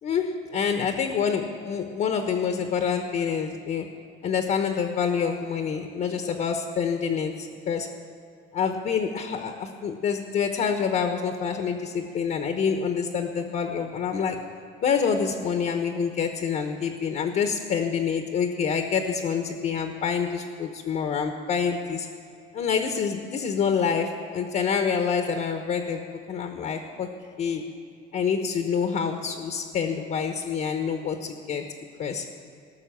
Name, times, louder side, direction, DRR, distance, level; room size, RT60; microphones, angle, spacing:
voice 1, 0.0-3.9 4.2-7.9 8.5-14.4 14.8-22.1 22.5-26.0 26.3-27.1 27.4-27.6 28.1-31.6 32.0-32.3, left 6 dB, 45° left, 5 dB, 1.0 m, -27 dB
18.0 x 6.3 x 7.5 m, 2.4 s
cardioid pair, 135°, 20 cm